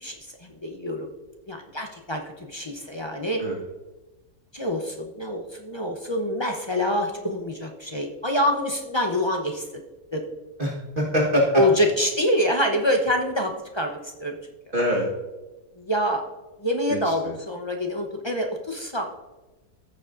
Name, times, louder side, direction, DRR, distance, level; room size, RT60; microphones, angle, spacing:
voice 1, 0.4-1.1 1.5-3.4 4.5-9.8 10.1-10.2 11.5-14.4 15.8-16.2 16.6-19.0, left 1 dB, 30° left, 2 dB, 0.5 m, -26 dB
voice 2, 10.6-11.6 14.7-15.1 16.9-17.3, equal, 35° right, -3 dB, 1.6 m, -24 dB
14.5 x 6.8 x 2.5 m, 1.1 s
omnidirectional pair, 1.7 m